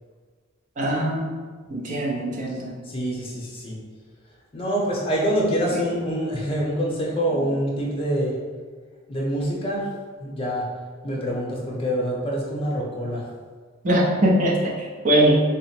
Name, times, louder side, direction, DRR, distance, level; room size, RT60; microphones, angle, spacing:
voice 1, 0.8-1.3 1.7-2.7 5.7-5.8 7.3-7.5 13.8-15.4, right 1 dB, 40° right, -3 dB, 0.6 m, -21 dB
voice 2, 2.9-3.8 4.5-8.4 9.1-9.8 10.2-10.6 11.0-13.2, equal, 25° left, -3 dB, 0.8 m, -25 dB
3.7 x 2.0 x 4.3 m, 1.5 s
head